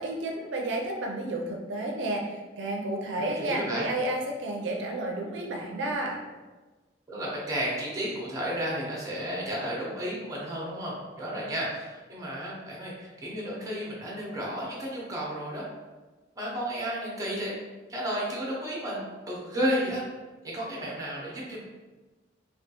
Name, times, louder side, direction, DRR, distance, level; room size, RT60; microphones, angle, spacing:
voice 1, 0.0-6.2, right 1 dB, 80° right, 0 dB, 0.4 m, -31 dB
voice 2, 3.2-3.9 7.1-15.7 16.4-17.5 17.9-20.0 20.5-21.6, equal, 20° right, -4 dB, 0.7 m, -32 dB
3.4 x 2.3 x 2.8 m, 1.2 s
head